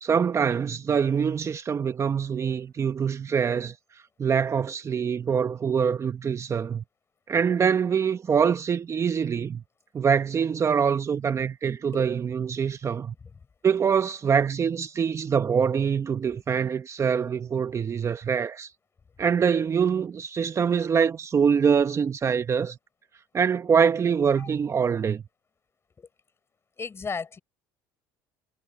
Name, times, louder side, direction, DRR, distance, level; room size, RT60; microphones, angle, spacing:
voice 1, 0.0-3.7 4.2-6.8 7.3-9.6 9.9-13.1 13.6-18.7 19.2-22.8 23.3-25.2, right 7 dB, 30° right, 1.2 m, -24 dB
voice 2, 26.8-27.4, left 5 dB, 25° left, 6.2 m, -35 dB
supercardioid pair, 95°, 9 cm